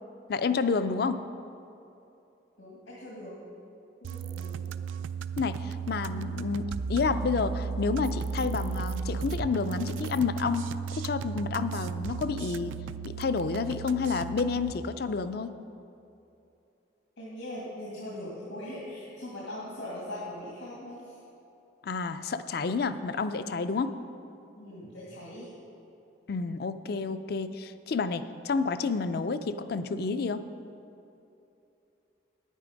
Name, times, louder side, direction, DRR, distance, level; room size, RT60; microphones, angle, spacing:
voice 1, 0.3-1.2 5.4-10.7 10.9-12.7 13.0-15.5 21.8-23.9 26.3-30.4, left 4 dB, 50° left, 12 dB, 0.4 m, -29 dB
voice 2, 2.6-3.4 4.1-4.7 17.2-21.2 24.5-25.5, left 1 dB, 85° left, -6 dB, 2.2 m, -40 dB
sound 1, 4.0-14.7, right 6 dB, 80° right, 0.3 m, -35 dB
9.6 x 9.1 x 5.1 m, 2.8 s
head